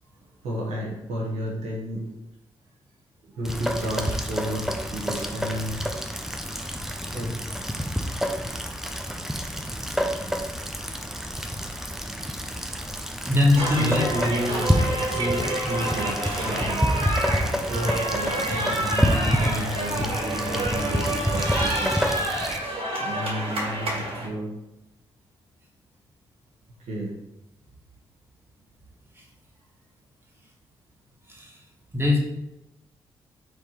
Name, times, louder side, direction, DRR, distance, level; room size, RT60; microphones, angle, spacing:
voice 1, 0.2-2.0 3.3-5.8 7.1-7.3 13.8-17.0 17.5-22.1 23.0-24.5 26.9-27.1, equal, 85° right, -3 dB, 0.9 m, -31 dB
Rain, 3.4-22.6, equal, 5° right, 0.6 m, -28 dB
voice 2, 13.3-14.0 31.9-32.2, left 2 dB, 20° right, -2 dB, 1.6 m, -20 dB
sound 1, 13.5-24.3, right 1 dB, 55° right, 1.5 m, -28 dB
3.5 x 3.1 x 4.3 m, 0.92 s
supercardioid pair, 40°, 11 cm